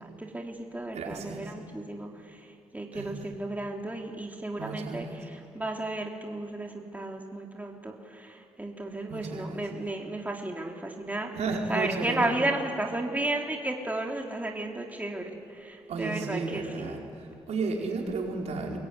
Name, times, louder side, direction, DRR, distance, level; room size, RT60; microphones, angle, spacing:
voice 1, 0.0-11.3 11.7-17.0, right 2 dB, 15° right, 0 dB, 3.7 m, -34 dB
voice 2, 0.9-1.5 2.9-3.1 4.6-5.1 9.1-9.5 11.3-12.3 15.9-18.8, right 3 dB, 75° right, -1 dB, 5.0 m, -33 dB
25.0 x 21.5 x 9.8 m, 2.5 s
cardioid pair, 60°, 11 cm